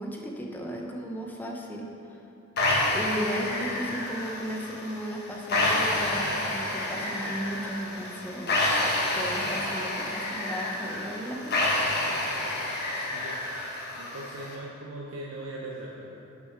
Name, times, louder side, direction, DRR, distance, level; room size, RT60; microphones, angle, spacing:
voice 1, 0.0-2.2 2.9-8.6 9.1-11.6 12.9-13.1, equal, 10° left, 0 dB, 0.7 m, -35 dB
sound 1, 2.6-14.6, left 1 dB, 45° left, 1.3 m, -29 dB
voice 2, 12.7-13.4 14.0-16.2, right 1 dB, 70° right, -4 dB, 0.8 m, -40 dB
6.5 x 6.1 x 5.8 m, 2.8 s
head